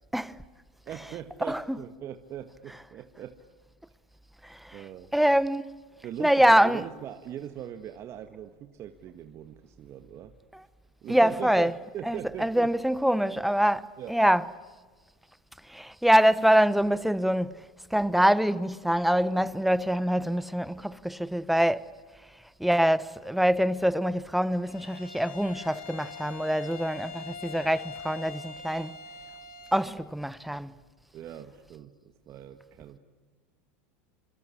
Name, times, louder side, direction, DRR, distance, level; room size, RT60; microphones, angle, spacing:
voice 1, 0.8-3.4 4.7-5.1 6.0-10.3 11.0-12.7 14.0-14.2 31.1-33.0, right 10 dB, 45° right, 1.6 m, -41 dB
voice 2, 4.4-4.8 5.1-5.7 6.2-6.8 11.1-11.7 12.1-14.4 15.7-21.8 22.6-28.9 29.7-30.7, equal, ahead, 1.0 m, -25 dB
Bowed string instrument, 24.7-29.9, left 5 dB, 75° left, 7.0 m, -43 dB
27.0 x 26.0 x 8.5 m
hypercardioid pair, 105°, 7 cm